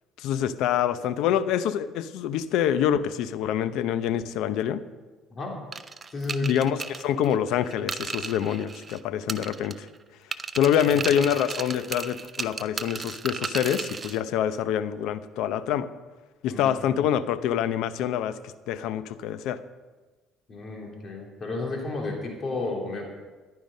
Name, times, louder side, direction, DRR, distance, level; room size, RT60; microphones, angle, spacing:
voice 1, 0.2-4.8 6.4-9.9 10.6-15.9 16.4-19.6, left 9 dB, 75° left, 13 dB, 0.7 m, -26 dB
sound 1, 5.7-9.0 9.3-10.0 10.3-14.2, right 4 dB, 25° right, 0.6 m, -35 dB
voice 2, 6.1-6.5 10.8-11.1 16.5-17.1 20.5-23.1, left 3 dB, 35° left, -1 dB, 3.3 m, -32 dB
14.0 x 11.0 x 5.4 m, 1.3 s
cardioid pair, 120°, 0 cm